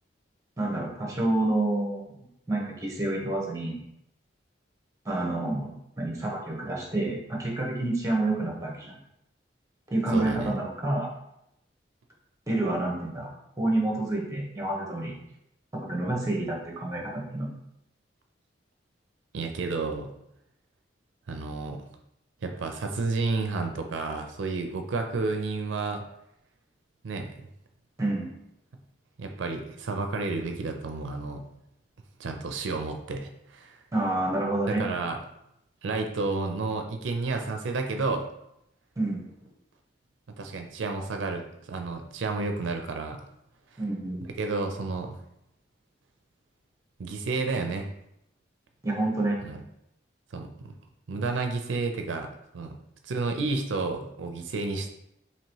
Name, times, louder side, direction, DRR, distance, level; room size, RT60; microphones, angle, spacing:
voice 1, 0.6-2.2 2.5-3.8 5.0-8.9 9.9-11.1 12.5-15.1 15.7-17.5 28.0-28.3 33.9-34.9 39.0-39.3 43.8-44.3 48.8-49.4, right 2 dB, 15° right, -2 dB, 0.9 m, -28 dB
voice 2, 10.1-10.5 19.3-20.1 21.3-21.8 22.4-26.0 27.0-27.3 29.2-31.4 32.2-33.8 34.7-35.2 35.8-38.2 40.4-43.2 44.4-45.2 47.0-47.9 49.4-49.6 50.3-50.7 51.1-52.3 52.5-52.7 53.0-54.9, right 3 dB, 85° right, 5 dB, 0.4 m, -31 dB
2.9 x 2.9 x 4.5 m, 0.80 s
head